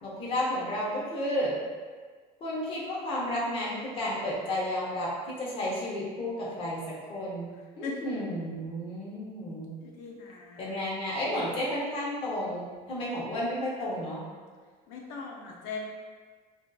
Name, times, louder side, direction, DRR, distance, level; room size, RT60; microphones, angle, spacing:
voice 1, 0.0-1.6 2.4-6.8 7.1-9.7 10.6-14.2, left 1 dB, 35° left, -5 dB, 0.6 m, -32 dB
voice 2, 9.8-10.9 14.9-15.8, left 5 dB, 85° left, -1 dB, 0.5 m, -39 dB
2.6 x 2.4 x 2.3 m, 1.5 s
cardioid pair, 165°, 16 cm